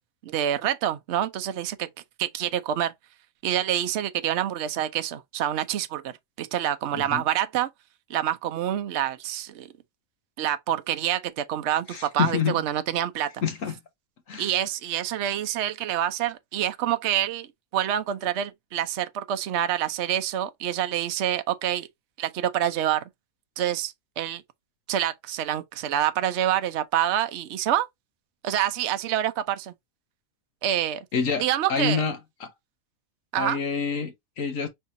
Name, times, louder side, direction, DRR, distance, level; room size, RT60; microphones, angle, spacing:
voice 1, 0.2-1.9 2.2-2.9 3.4-7.7 8.1-9.7 10.4-13.3 14.4-21.9 22.2-23.0 23.6-24.4 24.9-27.9 28.4-29.7 30.6-31.0 31.4-32.0 33.3-33.6, right 11 dB, 60° right, 0.9 m, -27 dB
voice 2, 11.9-12.6 13.4-13.7 14.3-14.5 31.1-31.4 31.7-32.5 33.4-34.7, left 6 dB, 75° left, 1.7 m, -27 dB
5.5 x 3.4 x 2.6 m
omnidirectional pair, 1.4 m